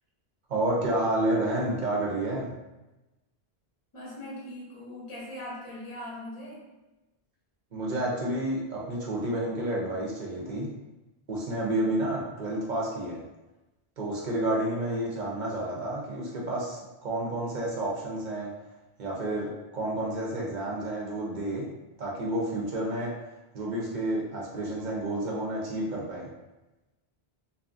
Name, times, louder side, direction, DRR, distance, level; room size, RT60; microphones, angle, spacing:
voice 1, 0.5-2.5 7.7-10.7 11.3-13.2 14.0-18.5 19.0-21.7 22.0-23.2 23.5-26.3, right 1 dB, 50° right, -3 dB, 0.7 m, -30 dB
voice 2, 3.9-6.6, left 1 dB, 35° left, -6 dB, 0.8 m, -40 dB
2.6 x 2.4 x 2.5 m, 1.0 s
omnidirectional pair, 1.1 m